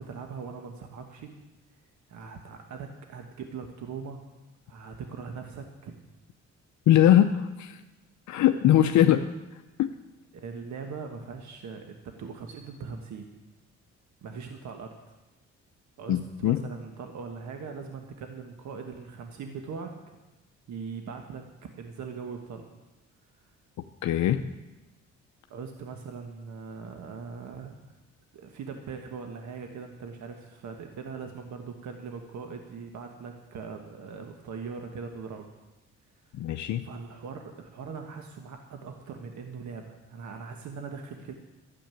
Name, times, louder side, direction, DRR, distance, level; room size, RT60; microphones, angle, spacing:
voice 1, 0.0-1.4 2.1-4.2 4.7-5.9 10.3-13.3 14.2-15.0 16.0-20.2 20.7-21.4 21.8-22.7 23.4-23.5 25.5-28.0 28.3-35.5 36.8-41.3, right 5 dB, 70° right, 4 dB, 1.4 m, -40 dB
voice 2, 6.9-7.8 8.3-9.3 9.8-9.9 16.1-16.6 24.0-24.4 36.3-36.9, left 11 dB, 70° left, 7 dB, 0.7 m, -21 dB
12.5 x 7.7 x 9.2 m, 1.1 s
cardioid pair, 90°, 30 cm